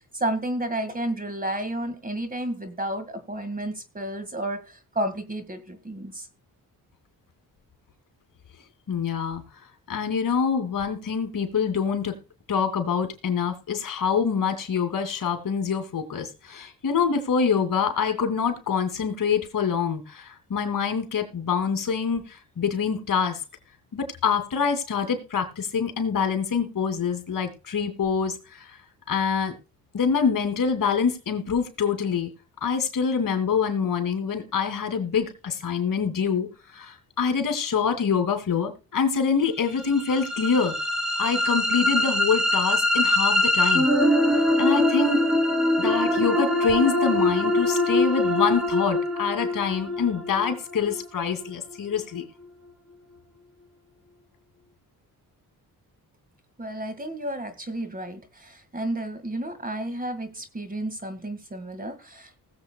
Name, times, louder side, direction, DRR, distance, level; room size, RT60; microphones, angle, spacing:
voice 1, 0.1-6.3 56.6-62.4, right 1 dB, 25° right, 10 dB, 1.9 m, -31 dB
voice 2, 8.9-9.4 9.9-12.2 12.5-23.4 23.9-28.8 29.1-29.5 29.9-32.3 32.6-40.8 41.2-43.9 44.6-45.2 45.8-52.2, left 6 dB, 60° left, 7 dB, 2.6 m, -25 dB
sound 1, 39.9-52.0, left 1 dB, ahead, 2.7 m, -23 dB
19.5 x 7.8 x 2.3 m, 0.30 s
cardioid pair, 80°, 37 cm